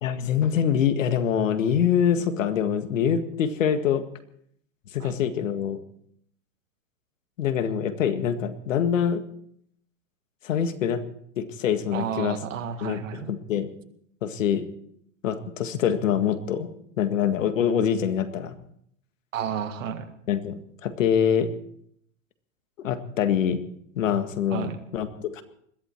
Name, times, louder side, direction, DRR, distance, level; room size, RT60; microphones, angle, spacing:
voice 1, 0.0-4.0 4.9-5.8 7.4-9.2 10.4-11.0 11.4-12.4 12.8-13.7 14.2-14.7 15.2-16.7 17.0-18.6 20.3-21.5 22.8-23.6 24.0-25.4, left 8 dB, 85° left, 9 dB, 2.0 m, -25 dB
voice 2, 11.9-13.3 19.3-20.0 24.5-24.8, right 8 dB, 85° right, 9 dB, 2.0 m, -31 dB
21.5 x 14.5 x 4.6 m, 0.70 s
hypercardioid pair, 110°, 38 cm